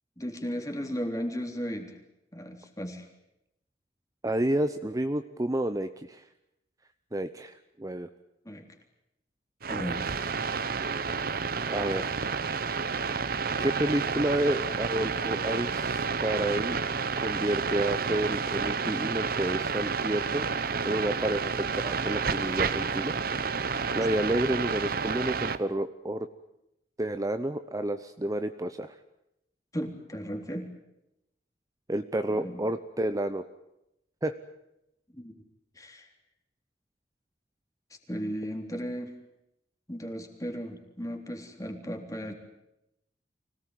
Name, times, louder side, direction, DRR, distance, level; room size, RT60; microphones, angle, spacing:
voice 1, 0.2-2.0 2.3-3.1 8.5-8.7 9.7-10.0 29.7-30.7 32.3-32.6 35.2-35.4 35.8-36.1 38.1-39.1 39.9-42.3, equal, 20° left, 4 dB, 3.6 m, -35 dB
voice 2, 4.2-6.2 7.1-8.1 11.7-12.2 13.6-16.8 17.2-21.5 21.8-23.1 23.9-26.3 27.0-28.9 31.9-33.4 34.2-34.4, right 1 dB, 20° right, 9 dB, 0.8 m, -30 dB
sound 1, 9.6-25.6, right 5 dB, 55° right, 1.0 m, -30 dB
25.0 x 18.0 x 9.3 m, 0.85 s
head